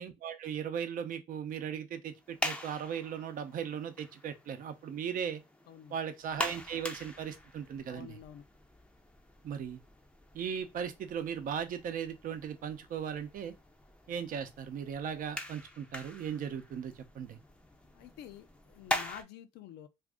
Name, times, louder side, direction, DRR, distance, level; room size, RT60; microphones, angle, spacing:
voice 1, 0.0-5.4 5.9-8.2 9.4-9.8 10.3-13.5 14.1-17.4, right 8 dB, 55° right, 0.6 m, -37 dB
sound 1, 2.1-19.2, left 1 dB, 5° left, 0.5 m, -43 dB
voice 2, 7.9-8.4 17.9-19.9, left 9 dB, 75° left, 0.6 m, -49 dB
2.6 x 2.5 x 3.5 m
cardioid pair, 110°, 17 cm